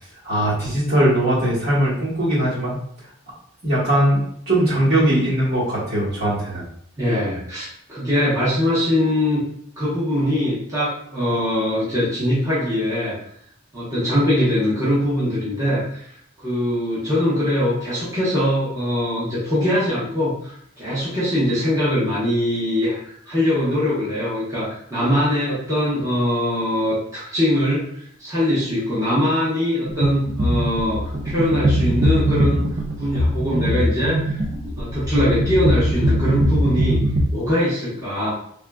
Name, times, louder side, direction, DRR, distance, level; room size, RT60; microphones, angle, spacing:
voice 1, 0.2-2.8 3.6-6.7, right 1 dB, 50° right, -8 dB, 1.4 m, -20 dB
voice 2, 7.0-9.4 9.8-13.2 13.7-16.1 16.4-27.8 28.2-34.4 34.8-37.0 37.3-38.3, left 1 dB, 15° right, -10 dB, 0.9 m, -22 dB
sound 1, 29.8-37.2, equal, 35° right, 0.4 m, -21 dB
3.4 x 2.7 x 2.2 m, 0.66 s
head